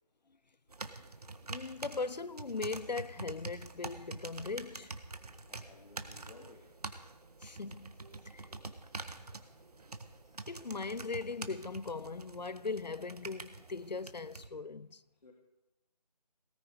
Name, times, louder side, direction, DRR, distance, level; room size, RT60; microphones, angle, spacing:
sound 1, 0.7-14.5, right 3 dB, 65° right, 1.5 m, -46 dB
voice 1, 1.5-4.9 7.4-7.9 8.2-8.5 10.5-15.0, left 4 dB, 85° left, 0.7 m, -39 dB
voice 2, 5.5-6.7 10.3-10.5 15.1-15.3, left 2 dB, 70° left, 3.0 m, -57 dB
18.5 x 13.5 x 4.9 m
figure-of-eight pair, 160°, 21 cm